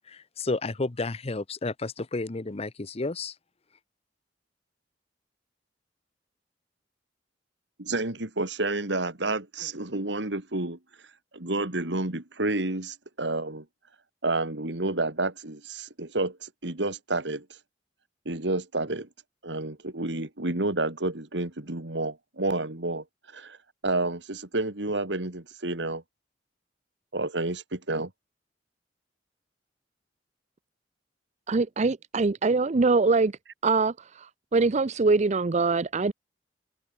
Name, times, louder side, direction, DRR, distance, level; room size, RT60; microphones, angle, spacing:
voice 1, 0.4-3.3, left 3 dB, 35° left, 0.8 m, -31 dB
voice 2, 7.8-10.8 11.3-13.6 14.2-17.6 18.3-19.1 19.4-23.0 23.3-23.6 23.8-26.0 27.1-28.1, right 2 dB, 75° right, 2.5 m, -30 dB
voice 3, 31.5-33.3 33.6-36.1, right 3 dB, 40° right, 0.5 m, -23 dB
head